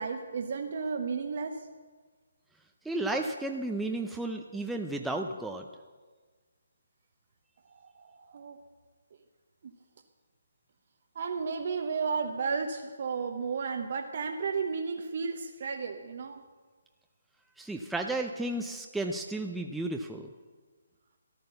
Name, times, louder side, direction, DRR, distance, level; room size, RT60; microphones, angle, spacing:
voice 1, 0.0-1.6 7.8-8.6 11.1-16.4, right 5 dB, 50° right, 4 dB, 1.0 m, -33 dB
voice 2, 2.8-5.6 17.6-20.3, right 2 dB, 5° right, 2 dB, 0.6 m, -33 dB
13.5 x 10.5 x 6.8 m, 1.4 s
figure-of-eight pair, 145°, 0 cm